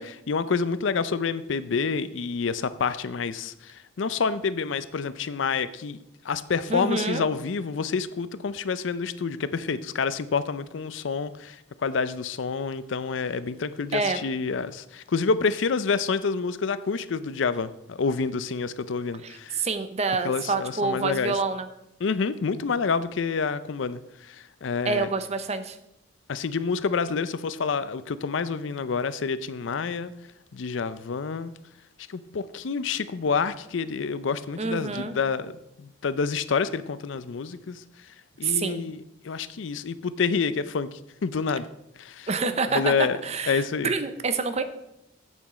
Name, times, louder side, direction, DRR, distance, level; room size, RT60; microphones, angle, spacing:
voice 1, 0.0-6.0 6.2-19.6 20.2-21.4 22.0-25.1 26.3-30.1 30.5-31.5 32.1-35.5 35.8-37.8 38.4-41.7 42.0-42.3 42.7-43.2 43.5-43.9, left 5 dB, 75° left, 15 dB, 0.5 m, -28 dB
voice 2, 6.7-7.2 13.9-14.2 19.2-21.7 24.8-25.8 34.6-35.1 38.4-38.8 42.3-44.6, right 4 dB, 35° right, 10 dB, 0.7 m, -27 dB
8.3 x 7.2 x 5.0 m, 0.83 s
head